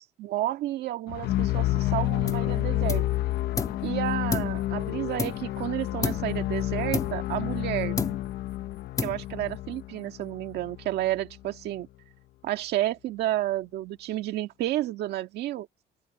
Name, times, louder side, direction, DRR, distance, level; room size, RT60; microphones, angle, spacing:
voice 1, 0.0-3.0 3.8-8.0 9.0-11.9 12.4-15.7, right 14 dB, 75° right, 1.8 m, -31 dB
sound 1, 1.1-11.1, left 15 dB, 75° left, 0.9 m, -29 dB
sound 2, 2.3-2.6 2.9-3.9 4.3-5.6 6.0-6.4 6.9-7.7 8.0-8.5 9.0-9.5, left 4 dB, 20° left, 1.6 m, -32 dB
open air
cardioid pair, 110°, 17 cm